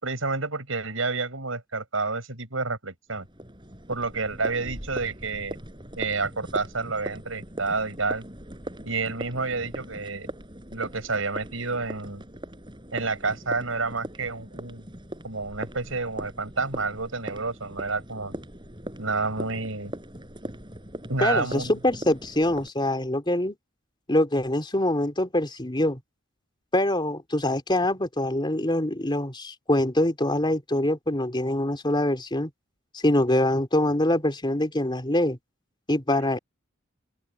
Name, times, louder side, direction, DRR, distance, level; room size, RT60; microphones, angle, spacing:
voice 1, 0.0-3.3 3.9-5.6 6.0-8.2 8.8-10.3 10.7-12.2 12.9-14.9 15.2-18.4 19.0-19.9 21.1-21.7, right 3 dB, 90° right, 5.9 m, -29 dB
sound 1, 3.1-22.7, right 1 dB, 25° right, 5.5 m, -40 dB
voice 2, 21.2-23.6 24.1-26.0 26.7-32.5 33.0-35.4 35.9-36.4, left 1 dB, 25° left, 3.5 m, -24 dB
open air
head